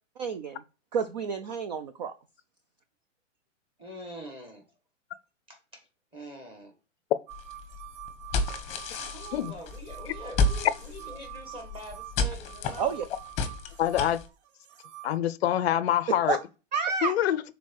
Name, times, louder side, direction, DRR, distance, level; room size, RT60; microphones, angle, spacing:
voice 1, 0.2-0.6 0.9-2.1 12.8-13.1 16.3-16.4 16.7-17.1, right 6 dB, 35° right, 0.4 m, -29 dB
voice 2, 3.8-4.6 5.5-5.9 6.1-6.7 9.1-13.0, equal, 15° right, 1.7 m, -44 dB
sound 1, 7.3-14.3, left 3 dB, 15° left, 1.0 m, -32 dB
sound 2, 7.3-15.2, right 14 dB, 50° right, 0.8 m, -46 dB
voice 3, 13.8-14.2 15.0-16.4 17.0-17.4, left 11 dB, 50° left, 0.5 m, -25 dB
6.3 x 4.0 x 4.5 m
hypercardioid pair, 150°, 40 cm